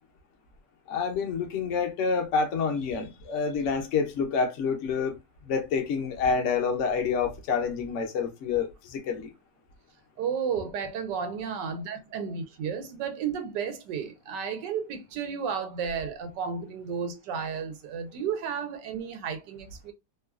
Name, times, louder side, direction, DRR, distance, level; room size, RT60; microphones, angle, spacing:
voice 1, 0.9-5.1 5.4-9.3, left 5 dB, 60° left, 0.8 m, -28 dB
voice 2, 10.2-19.9, right 6 dB, 80° right, 1.2 m, -33 dB
3.0 x 2.3 x 2.3 m
omnidirectional pair, 1.9 m